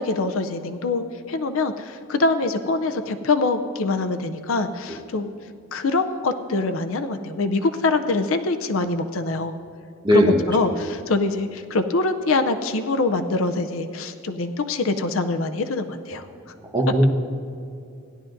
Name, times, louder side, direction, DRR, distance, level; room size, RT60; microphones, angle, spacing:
voice 1, 0.0-5.3 5.7-9.6 10.1-16.2, left 3 dB, 65° left, 8 dB, 0.5 m, -24 dB
voice 2, 10.0-10.7 16.7-17.1, equal, 20° right, 1 dB, 1.2 m, -19 dB
16.5 x 11.0 x 2.6 m, 2.6 s
head